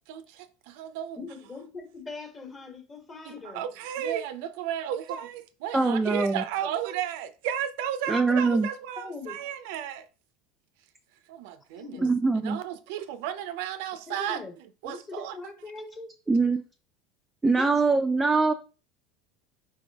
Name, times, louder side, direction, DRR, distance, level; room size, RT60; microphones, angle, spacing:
voice 1, 0.1-1.2 3.2-10.1 11.3-12.0 12.4-14.4 14.8-15.3, right 10 dB, 75° right, 0.5 m, -33 dB
voice 2, 1.2-3.6 5.9-6.0 9.0-9.4 11.8-12.1 14.1-14.5 14.8-16.1 17.6-17.8, left 3 dB, 20° left, 1.2 m, -41 dB
voice 3, 5.7-6.4 8.1-8.7 12.0-12.6 16.3-16.6 17.4-18.5, right 3 dB, 10° right, 0.4 m, -23 dB
4.0 x 3.8 x 3.4 m
supercardioid pair, 135°, 0 cm